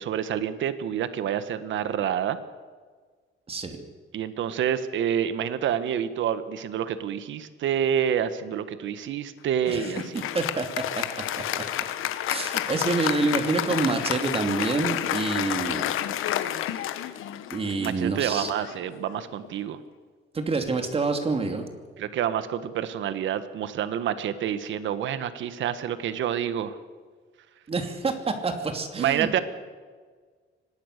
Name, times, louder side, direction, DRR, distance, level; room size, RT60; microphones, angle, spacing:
voice 1, 0.0-2.4 4.1-10.2 17.8-19.8 22.0-26.8 29.0-29.4, right 9 dB, 65° right, 12 dB, 1.5 m, -28 dB
voice 2, 3.5-3.8 9.7-9.9 10.1-11.0 11.6-11.7 12.3-15.9 17.5-18.5 20.3-21.7 27.7-29.4, right 3 dB, 30° right, 6 dB, 2.8 m, -27 dB
Applause, 9.6-19.5, left 12 dB, 80° left, 1.4 m, -30 dB
24.5 x 19.5 x 6.7 m, 1.5 s
cardioid pair, 140°, 21 cm